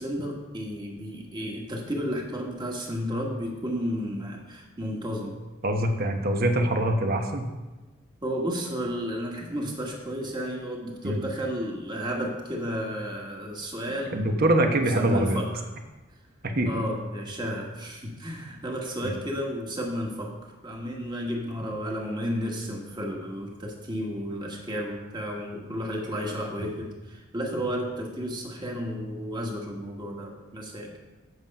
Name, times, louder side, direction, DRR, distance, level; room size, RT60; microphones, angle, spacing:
voice 1, 0.0-5.4 8.2-15.7 16.6-31.0, equal, 20° right, 0 dB, 1.6 m, -32 dB
voice 2, 5.6-7.5 11.0-11.2 14.1-15.4 16.5-16.7 26.6-26.7, right 1 dB, 50° right, 4 dB, 1.1 m, -24 dB
8.0 x 7.4 x 5.4 m, 1.2 s
head